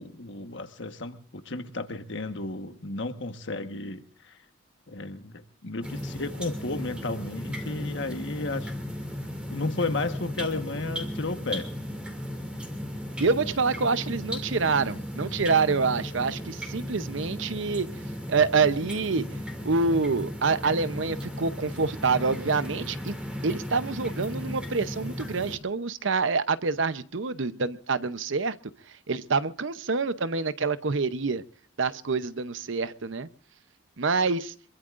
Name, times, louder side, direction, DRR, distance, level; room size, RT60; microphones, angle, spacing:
voice 1, 0.0-4.0 4.9-8.7 9.5-11.7, left 2 dB, 65° left, 7 dB, 1.3 m, -33 dB
sound 1, 5.8-25.6, equal, 5° right, 2.5 m, -36 dB
voice 2, 13.2-17.9 18.3-19.3 19.6-23.1 23.4-28.6 29.1-31.4 31.8-33.3 34.0-34.5, right 4 dB, 70° right, 13 dB, 0.8 m, -26 dB
25.5 x 22.5 x 2.5 m, 0.41 s
head